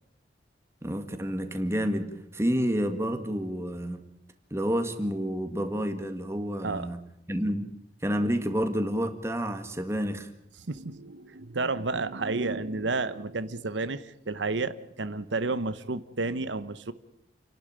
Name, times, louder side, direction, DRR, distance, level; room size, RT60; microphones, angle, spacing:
voice 1, 0.8-4.0 4.5-7.0 7.3-7.7 8.0-10.3, equal, 15° right, 7 dB, 1.9 m, -29 dB
voice 2, 10.7-16.9, right 3 dB, 85° right, 13 dB, 1.0 m, -31 dB
29.5 x 12.0 x 8.9 m, 0.82 s
head